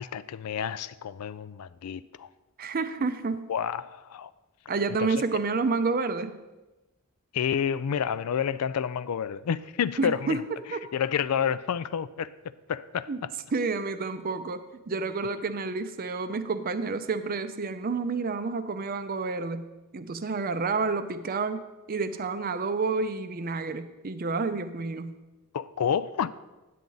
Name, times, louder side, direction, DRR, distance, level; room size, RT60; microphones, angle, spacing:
voice 1, 0.0-2.3 3.5-4.3 5.0-5.1 7.3-10.4 10.9-12.3 12.7-13.1 25.5-26.3, left 8 dB, 80° left, 0.4 m, -29 dB
voice 2, 2.6-3.5 4.7-6.4 10.0-10.9 13.1-13.2 13.5-19.7 19.9-25.2, right 4 dB, 40° right, 0.5 m, -29 dB
9.2 x 8.5 x 3.9 m
head